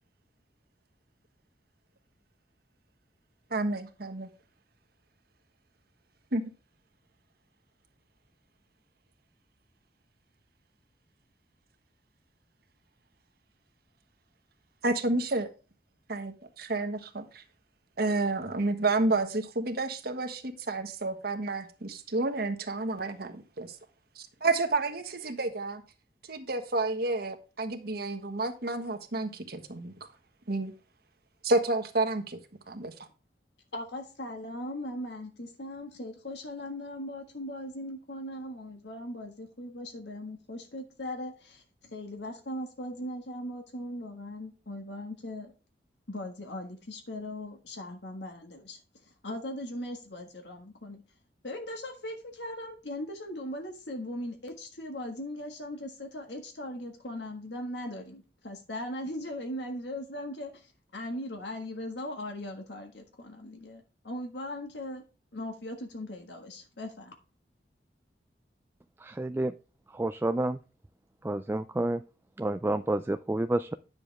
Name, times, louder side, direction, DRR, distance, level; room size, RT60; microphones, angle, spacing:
voice 1, 3.5-4.3 6.3-6.4 14.8-15.5 16.1-17.4 18.0-23.7 24.2-25.8 26.3-29.9 30.5-30.7 31.4-32.4 32.7-32.9, right 2 dB, 60° right, 1.4 m, -30 dB
voice 2, 33.7-45.5 46.1-48.8 49.2-51.0 51.4-65.0 65.3-67.1, left 1 dB, 75° left, 1.6 m, -39 dB
voice 3, 69.0-69.5 69.9-70.6 71.2-72.0 72.4-73.7, right 1 dB, 15° right, 0.3 m, -29 dB
9.7 x 7.1 x 3.4 m
head